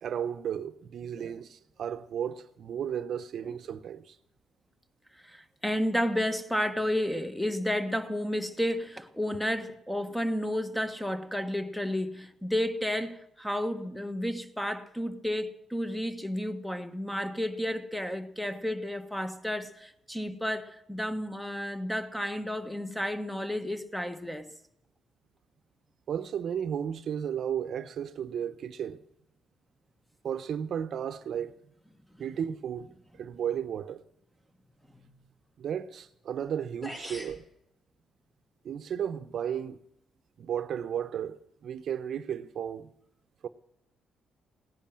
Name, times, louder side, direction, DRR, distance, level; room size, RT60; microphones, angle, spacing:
voice 1, 0.0-4.2 26.1-29.0 30.2-31.6 32.2-34.0 35.6-37.4 38.6-39.8 40.4-42.9 43.4-43.5, right 8 dB, 60° right, 0.8 m, -34 dB
voice 2, 5.2-24.5 34.9-35.2, equal, 5° left, 1.4 m, -32 dB
sound 1, 36.5-36.6 36.8-37.4, equal, 20° left, 5.0 m, -40 dB
18.0 x 10.5 x 7.6 m
cardioid pair, 90°, 0 cm